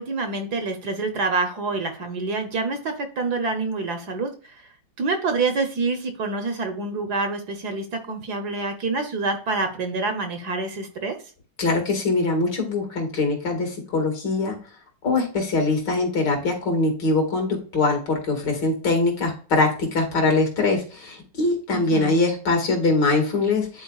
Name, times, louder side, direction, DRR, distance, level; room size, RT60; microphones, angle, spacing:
voice 1, 0.0-4.3 5.0-11.2 21.7-22.2, right 3 dB, 60° right, 6 dB, 1.4 m, -27 dB
voice 2, 11.6-14.6 15.0-23.8, left 3 dB, 65° left, 2 dB, 2.5 m, -22 dB
10.5 x 4.1 x 2.3 m, 0.40 s
omnidirectional pair, 2.1 m